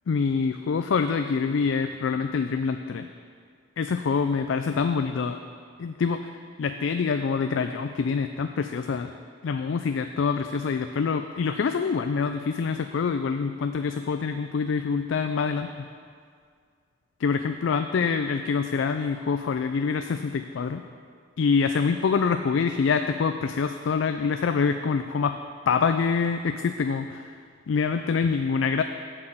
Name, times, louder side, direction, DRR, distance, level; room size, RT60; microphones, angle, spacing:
voice 1, 0.1-3.1 3.8-5.4 5.8-6.3 6.6-9.1 9.4-15.9 17.2-20.8 21.4-25.4 25.7-27.3 27.7-28.8, left 5 dB, 70° left, 8 dB, 0.4 m, -25 dB
7.8 x 6.1 x 7.6 m, 2.1 s
head